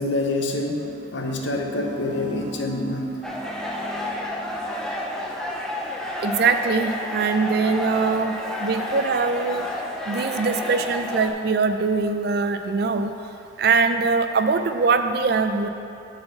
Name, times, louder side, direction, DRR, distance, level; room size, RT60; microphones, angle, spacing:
voice 1, 0.0-3.2, left 2 dB, 70° left, 2 dB, 0.8 m, -26 dB
sound 1, 0.8-5.4, right 1 dB, 20° right, 0.8 m, -39 dB
sound 2, 3.2-11.3, left 1 dB, 5° left, 0.5 m, -30 dB
voice 2, 6.2-8.3 8.6-9.7 10.1-13.1 13.6-15.7, right 4 dB, 55° right, 8 dB, 0.4 m, -22 dB
7.8 x 4.2 x 6.8 m, 2.7 s
head